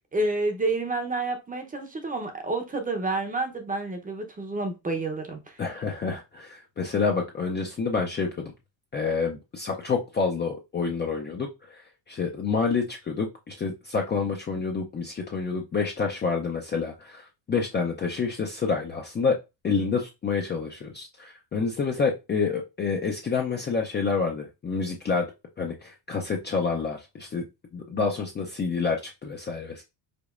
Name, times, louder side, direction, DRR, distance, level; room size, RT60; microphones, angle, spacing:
voice 1, 0.1-5.6, right 2 dB, 15° right, 0.7 m, -29 dB
voice 2, 5.6-8.4 8.9-11.8 12.1-19.4 19.6-25.3 25.6-27.4 27.7-29.8, left 5 dB, 20° left, 0.5 m, -28 dB
5.2 x 4.0 x 2.4 m
cardioid pair, 140°, 49 cm